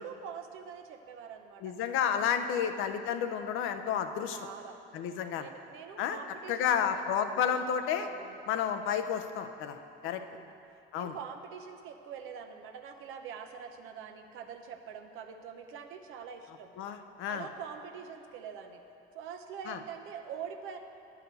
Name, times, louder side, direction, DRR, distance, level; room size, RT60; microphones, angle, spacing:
voice 1, 0.0-1.7 2.5-2.8 4.3-4.8 5.4-6.7 7.3-7.5 8.0-8.4 10.0-10.6 10.9-16.7 17.3-18.8 19.1-20.8, right 7 dB, 80° right, 5 dB, 0.8 m, -44 dB
voice 2, 1.6-4.5 4.9-5.5 6.0-6.2 6.5-8.1 8.5-10.2 10.9-11.2 16.8-17.5 19.7-19.8, left 8 dB, 80° left, 8 dB, 0.6 m, -31 dB
10.5 x 4.9 x 6.7 m, 2.8 s
supercardioid pair, 80°, 21 cm